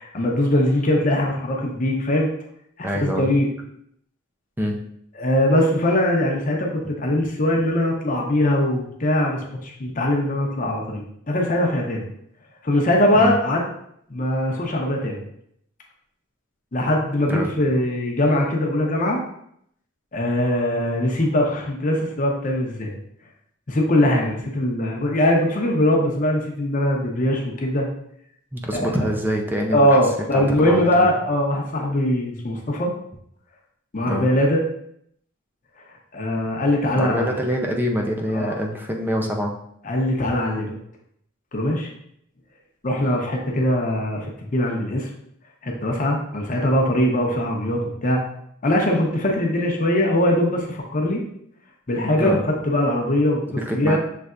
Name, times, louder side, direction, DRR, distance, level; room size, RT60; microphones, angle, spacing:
voice 1, 0.0-2.3 2.8-3.5 5.2-12.0 12.6-13.6 14.1-15.2 16.7-19.2 20.1-22.9 23.7-27.9 28.7-29.0 29.7-32.9 33.9-34.6 36.1-37.3 38.3-38.5 39.8-40.7 41.5-41.9 42.8-45.1 45.6-48.2 48.6-51.2 51.9-53.5 53.7-54.0, left 1 dB, 40° left, 0 dB, 0.7 m, -21 dB
voice 2, 2.8-3.3 4.6-4.8 13.1-13.4 17.3-17.5 28.5-30.0 30.3-31.1 34.1-34.3 37.0-39.5 52.2-52.5 53.6-54.0, equal, 10° right, 1 dB, 0.5 m, -25 dB
6.5 x 3.3 x 2.4 m, 0.72 s
head